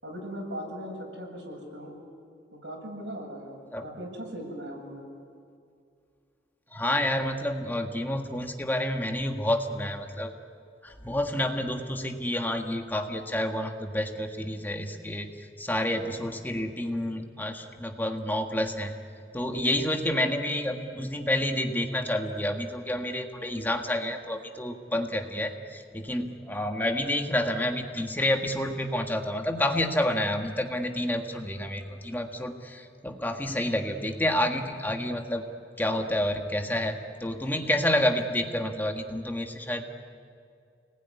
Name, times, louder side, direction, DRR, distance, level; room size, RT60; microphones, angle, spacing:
voice 1, 0.0-2.0 2.5-5.0, equal, 90° right, 1 dB, 7.4 m, -39 dB
voice 2, 6.7-10.3 10.8-18.9 19.3-35.5 35.8-36.9 37.2-39.9, left 1 dB, 10° left, 4 dB, 1.7 m, -29 dB
30.0 x 20.0 x 9.7 m, 2.3 s
head